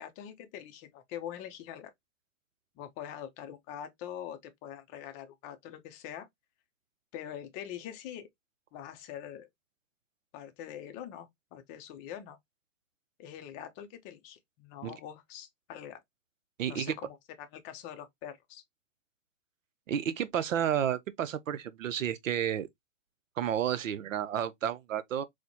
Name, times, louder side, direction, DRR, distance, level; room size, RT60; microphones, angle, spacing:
voice 1, 0.0-1.9 2.8-6.3 7.1-8.3 8.7-9.5 10.3-12.4 13.2-16.0 16.6-18.6, left 10 dB, 20° left, 0.5 m, -44 dB
voice 2, 16.6-17.0 19.9-22.7 23.4-25.2, right 9 dB, 85° right, 0.7 m, -31 dB
4.2 x 2.1 x 2.7 m
hypercardioid pair, 130°, 38 cm